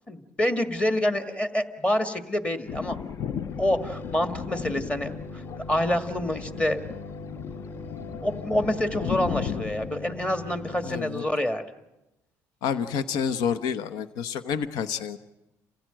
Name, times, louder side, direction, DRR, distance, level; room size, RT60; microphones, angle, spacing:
voice 1, 0.1-3.0 3.6-5.1 5.7-6.8 8.2-11.7, left 1 dB, 15° left, 8 dB, 1.9 m, -27 dB
Thunder, 2.7-9.9, left 8 dB, 50° left, 0.8 m, -36 dB
sound 1, 3.5-11.0, left 3 dB, 30° left, 1.5 m, -40 dB
voice 2, 10.8-11.2 12.6-15.2, left 7 dB, 80° left, 11 dB, 1.0 m, -29 dB
28.0 x 15.5 x 9.0 m, 0.95 s
cardioid pair, 115°, 7 cm